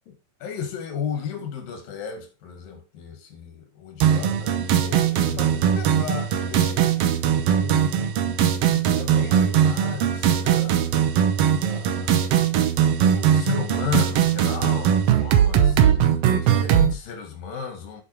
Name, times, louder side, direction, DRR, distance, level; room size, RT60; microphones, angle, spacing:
voice 1, 0.1-8.2 8.6-11.0 11.6-12.4 13.0-18.0, left 7 dB, 85° left, 3.5 m, -34 dB
sound 1, 4.0-16.9, right 9 dB, 85° right, 1.3 m, -20 dB
8.3 x 6.0 x 4.5 m
omnidirectional pair, 4.0 m